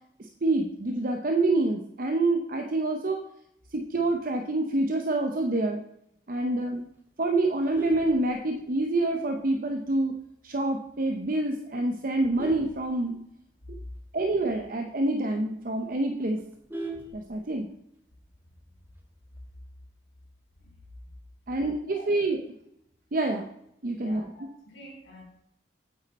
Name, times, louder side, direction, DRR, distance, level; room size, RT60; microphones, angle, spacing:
voice 1, 0.4-3.2 3.7-5.8 6.3-6.9 7.2-10.2 10.4-13.2 14.1-16.4 17.1-17.7 21.5-22.4 23.1-23.5 23.8-24.2, right 2 dB, 50° right, 4 dB, 0.7 m, -27 dB
Vehicle horn car horn honking, 7.5-9.0 9.4-9.7 10.0-10.1 10.5-10.6 10.9-11.3 11.8-13.6 14.0-14.1 14.4-14.5 14.9-15.0 15.4-15.5 15.7-17.8 18.9-19.4, right 1 dB, 10° right, 1.4 m, -39 dB
voice 2, 24.0-25.2, equal, 90° left, -2 dB, 3.6 m, -47 dB
8.6 x 8.3 x 4.1 m, 0.77 s
head